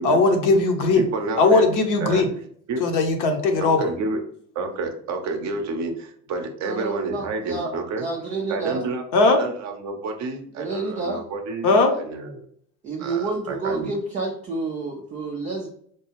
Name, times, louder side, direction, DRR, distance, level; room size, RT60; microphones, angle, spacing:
voice 1, 0.0-1.0 1.4-2.3 2.8-3.8 9.1-9.4 11.6-11.9, left 3 dB, 40° left, 4 dB, 0.8 m, -18 dB
voice 2, 1.0-1.7 2.0-2.2 2.7-2.8 3.6-4.2 4.5-8.0 8.5-12.5 13.0-13.9, right 3 dB, 35° right, 5 dB, 0.7 m, -29 dB
voice 3, 6.6-7.7 8.0-8.8 10.6-11.2 12.8-15.7, right 3 dB, 15° right, 0 dB, 0.3 m, -29 dB
4.5 x 2.3 x 3.0 m, 0.64 s
hypercardioid pair, 75°, 50 cm